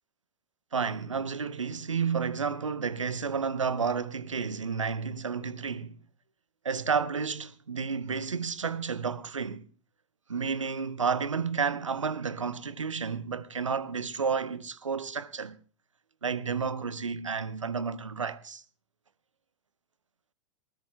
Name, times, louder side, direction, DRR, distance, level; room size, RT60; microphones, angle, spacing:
voice 1, 0.7-6.0 6.6-9.6 10.3-15.6 16.2-18.6, right 5 dB, 80° right, 0.7 m, -31 dB
20.5 x 18.5 x 2.2 m
figure-of-eight pair, 95°, 16 cm